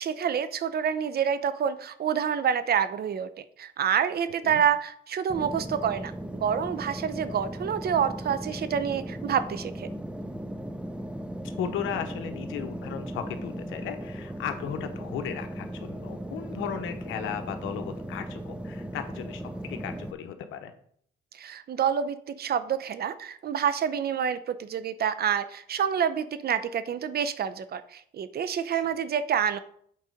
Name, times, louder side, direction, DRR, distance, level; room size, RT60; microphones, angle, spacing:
voice 1, 0.0-9.9 21.3-29.6, right 8 dB, 50° right, 13 dB, 0.7 m, -28 dB
sound 1, 5.3-20.1, right 1 dB, 5° right, 0.6 m, -37 dB
voice 2, 11.5-20.7 28.7-28.9, left 8 dB, 85° left, 7 dB, 1.0 m, -36 dB
7.6 x 4.1 x 5.0 m, 0.64 s
cardioid pair, 90°, 20 cm